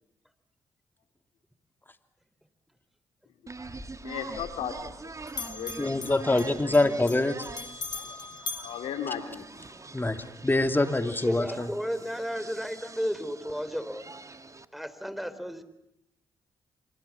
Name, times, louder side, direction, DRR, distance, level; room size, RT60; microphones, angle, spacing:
sound 1, 3.5-14.7, right 3 dB, 30° right, 1.9 m, -44 dB
Bell, 3.6-5.0 5.3-9.8, left 4 dB, 45° left, 1.9 m, -41 dB
voice 1, 4.0-4.9 5.4-6.2 8.6-9.4, left 8 dB, 80° left, 8 dB, 2.5 m, -35 dB
voice 2, 5.8-7.5 9.9-11.7, left 2 dB, 20° left, 8 dB, 2.7 m, -25 dB
voice 3, 11.3-14.0 14.7-15.6, equal, ahead, 13 dB, 3.8 m, -33 dB
28.5 x 25.5 x 7.3 m, 0.77 s
supercardioid pair, 50°, 10 cm